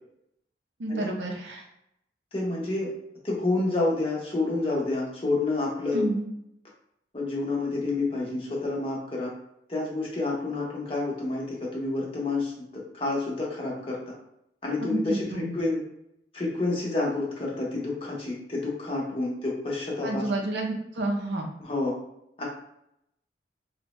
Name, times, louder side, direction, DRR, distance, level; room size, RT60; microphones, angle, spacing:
voice 1, 0.8-1.6 5.9-6.3 14.8-15.5 20.0-21.4, right 1 dB, 80° right, 1 dB, 0.6 m, -29 dB
voice 2, 2.3-2.9 3.2-6.0 7.1-9.3 9.7-14.1 14.6-15.8 16.3-20.3 21.6-22.0 22.4-22.5, left 2 dB, 30° left, -3 dB, 0.9 m, -29 dB
3.3 x 2.2 x 3.0 m, 0.79 s
head